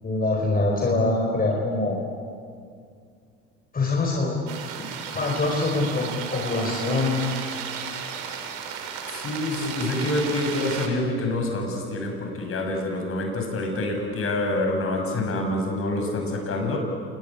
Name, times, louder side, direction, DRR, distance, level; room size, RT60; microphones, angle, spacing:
voice 1, 0.0-2.0 3.7-4.4 5.1-7.2, left 2 dB, 30° left, -1 dB, 5.2 m, -24 dB
sound 1, 4.5-10.9, right 7 dB, 70° right, 3.7 m, -34 dB
voice 2, 9.1-16.8, left 2 dB, 45° left, 3 dB, 6.8 m, -27 dB
28.0 x 20.5 x 8.5 m, 2.2 s
hypercardioid pair, 75°, 31 cm